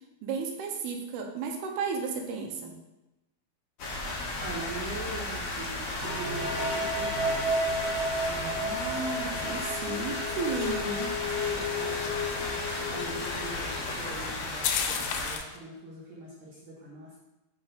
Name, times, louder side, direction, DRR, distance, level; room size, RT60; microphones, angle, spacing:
voice 1, 0.2-2.8 8.3-11.1, right 5 dB, 90° right, 3 dB, 2.9 m, -34 dB
sound 1, 3.8-15.4, left 2 dB, 65° left, 1.3 m, -34 dB
voice 2, 4.1-7.4 9.3-9.6 10.8-17.2, right 2 dB, 65° right, -5 dB, 2.4 m, -43 dB
sound 2, 4.9-15.6, left 8 dB, 85° left, 2.6 m, -40 dB
sound 3, 6.0-13.7, left 1 dB, 25° left, 2.9 m, -33 dB
7.5 x 5.1 x 4.0 m, 0.98 s
omnidirectional pair, 4.5 m